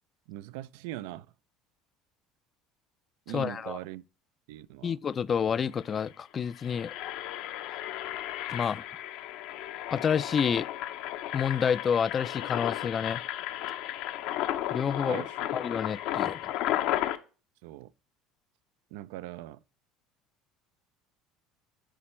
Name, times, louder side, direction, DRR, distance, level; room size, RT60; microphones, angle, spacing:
voice 1, 0.3-1.3 3.3-4.0 4.5-5.0 15.0-15.5 17.6-17.9 18.9-19.6, right 15 dB, 85° right, 0.3 m, -40 dB
voice 2, 3.3-3.8 4.8-6.9 8.5-8.8 9.9-10.7 11.3-13.2 14.7-15.2 15.5-16.5, left 7 dB, 30° left, 0.3 m, -29 dB
Engine, 5.8-6.0 6.5-17.2, left 13 dB, 70° left, 0.7 m, -34 dB
10.0 x 4.3 x 3.1 m
supercardioid pair, 120°, 0 cm